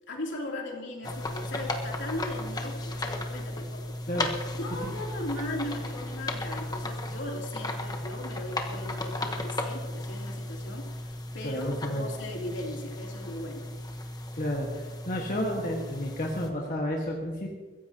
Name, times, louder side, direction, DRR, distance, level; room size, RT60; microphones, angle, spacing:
voice 1, 0.1-4.0 4.6-13.7 15.1-15.6, left 1 dB, 70° left, -1 dB, 3.2 m, -38 dB
sound 1, 1.0-16.5, left 1 dB, 20° left, 1.1 m, -35 dB
voice 2, 11.4-12.1 14.3-17.5, equal, 40° left, -2 dB, 1.6 m, -31 dB
23.0 x 15.5 x 2.9 m, 1.4 s
head